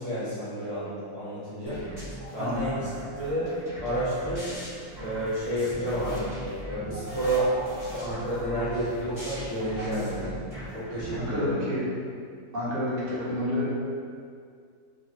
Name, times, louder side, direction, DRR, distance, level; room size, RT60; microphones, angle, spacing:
voice 1, 0.0-1.8 2.3-2.9 3.1-3.5 3.8-4.5 5.0-6.3 6.6-10.4 10.7-11.7, right 1 dB, 60° left, -13 dB, 1.3 m, -30 dB
sound 1, 1.7-11.3, right 1 dB, 30° right, 0.9 m, -39 dB
voice 2, 11.1-11.8 12.5-13.9, left 1 dB, 75° right, -7 dB, 1.4 m, -29 dB
3.7 x 2.1 x 2.7 m, 2.2 s
omnidirectional pair, 1.9 m